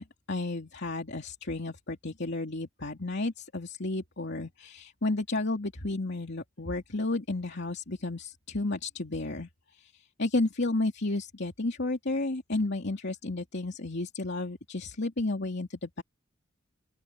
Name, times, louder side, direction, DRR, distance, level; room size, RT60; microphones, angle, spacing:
voice 1, 0.0-9.5 9.8-9.9 10.2-16.0, left 2 dB, 60° left, 2.7 m, -32 dB
open air
head